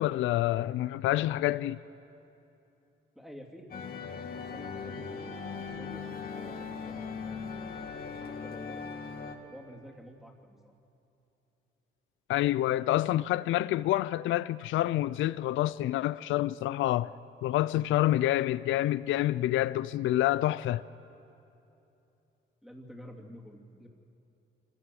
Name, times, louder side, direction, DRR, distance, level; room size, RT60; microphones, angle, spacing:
voice 1, 0.0-1.8 12.3-17.1 17.4-20.8, left 14 dB, 80° left, 0.4 m, -27 dB
voice 2, 3.1-3.7 4.3-7.1 7.9-8.9 9.4-10.7 22.6-23.9, equal, ahead, 2.9 m, -50 dB
sound 1, 3.7-9.3, left 5 dB, 50° left, 2.1 m, -39 dB
25.5 x 16.0 x 7.7 m
cardioid pair, 90°, 20 cm